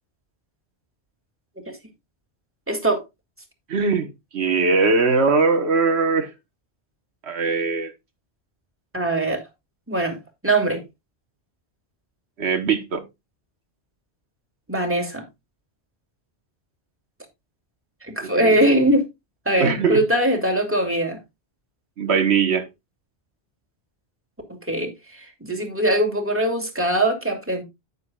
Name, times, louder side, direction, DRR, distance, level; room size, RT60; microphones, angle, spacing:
voice 1, 2.7-3.0 8.9-9.4 9.9-10.2 10.4-10.8 14.7-15.3 18.0-19.1 19.5-21.2 24.7-27.6, right 1 dB, 10° right, 2.4 m, -21 dB
voice 2, 3.7-6.3 7.2-7.9 12.4-13.0 18.2-18.6 19.6-20.0 22.0-22.7, right 4 dB, 85° right, 1.5 m, -21 dB
9.6 x 9.5 x 2.3 m
omnidirectional pair, 1.1 m